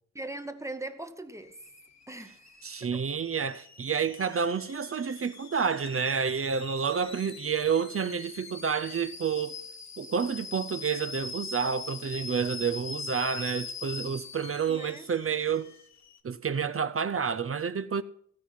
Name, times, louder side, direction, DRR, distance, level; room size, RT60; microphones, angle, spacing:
voice 1, 0.1-1.6 2.1-2.5 2.9-3.0 5.6-5.8 14.7-15.1, right 2 dB, 10° right, 0.9 m, -40 dB
Alarm / Boiling, 1.4-16.2, left 4 dB, 60° left, 1.4 m, -43 dB
voice 2, 2.6-9.6 10.0-15.7 16.2-18.0, right 6 dB, 45° right, 0.6 m, -29 dB
16.0 x 5.5 x 8.8 m
wide cardioid pair, 165°, 31 cm